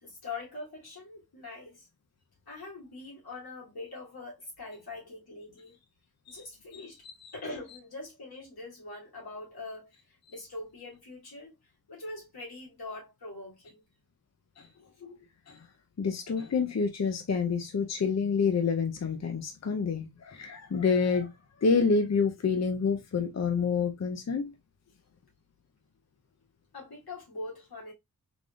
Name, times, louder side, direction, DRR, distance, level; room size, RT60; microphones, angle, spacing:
voice 1, 0.0-1.9 2.5-5.8 6.3-7.0 7.3-9.9 10.3-11.5 11.9-13.8 26.7-27.9, left 2 dB, 90° left, 2.1 m, -43 dB
voice 2, 16.0-21.3 21.6-24.5, left 5 dB, 45° left, 0.6 m, -28 dB
3.9 x 3.4 x 2.3 m
wide cardioid pair, 75°, 36 cm